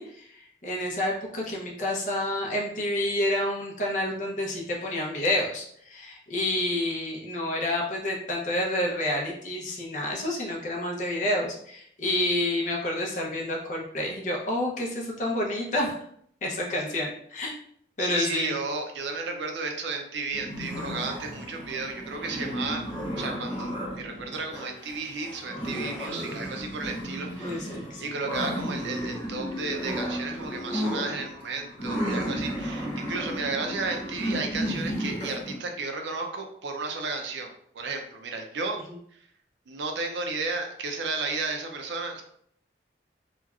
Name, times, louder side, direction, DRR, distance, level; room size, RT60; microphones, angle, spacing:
voice 1, 0.0-15.9 16.4-17.5 18.0-18.6 27.4-28.0 38.9-39.0, left 1 dB, 45° left, -1 dB, 0.6 m, -29 dB
voice 2, 18.0-22.8 23.2-37.5 37.7-38.8 39.7-42.2, right 3 dB, 80° right, 3 dB, 0.5 m, -33 dB
sound 1, 20.3-35.5, equal, 25° left, 1.0 m, -33 dB
3.0 x 2.3 x 2.3 m, 0.67 s
head